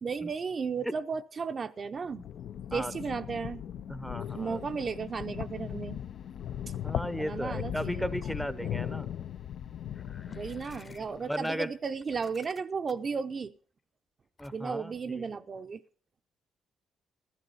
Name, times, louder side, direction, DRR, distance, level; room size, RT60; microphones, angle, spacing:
voice 1, 0.0-2.3 2.7-3.6 4.3-6.0 7.1-8.1 8.4-8.8 10.3-13.6 14.5-15.8, right 5 dB, 40° right, 0.6 m, -35 dB
sound 1, 2.0-11.3, left 10 dB, 70° left, 0.5 m, -38 dB
voice 2, 3.9-4.6 6.8-9.1 11.3-11.7 14.4-14.9, equal, ahead, 0.6 m, -35 dB
sound 2, 4.2-11.8, left 6 dB, 55° left, 1.9 m, -59 dB
sound 3, 9.9-11.5 12.0-13.1 14.4-14.8, left 3 dB, 30° left, 0.8 m, -54 dB
13.5 x 12.5 x 4.0 m
cardioid pair, 90°, 0 cm